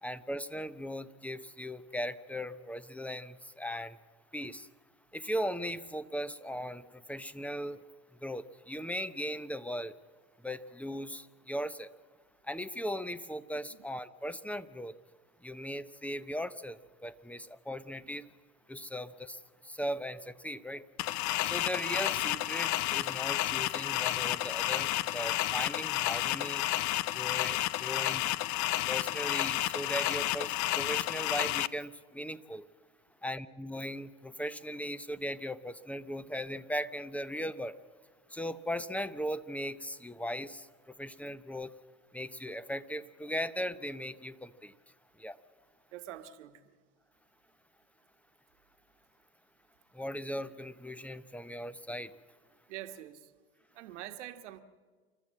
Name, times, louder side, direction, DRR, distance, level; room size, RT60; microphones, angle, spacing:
voice 1, 0.0-4.0 4.3-4.7 5.1-7.8 8.2-10.0 10.4-11.9 12.4-15.0 15.4-18.3 18.7-20.9 21.4-26.7 27.1-28.3 28.9-32.7 33.2-37.8 38.3-41.7 42.1-44.7 45.2-45.4 49.9-52.1, equal, 5° left, 15 dB, 0.9 m, -38 dB
sound 1, 21.0-31.7, left 16 dB, 55° left, 0.7 m, -31 dB
voice 2, 45.9-46.7 52.7-53.3 53.7-54.6, right 12 dB, 80° right, 7 dB, 1.6 m, -45 dB
28.5 x 12.5 x 7.6 m, 1.4 s
hypercardioid pair, 95°, 35 cm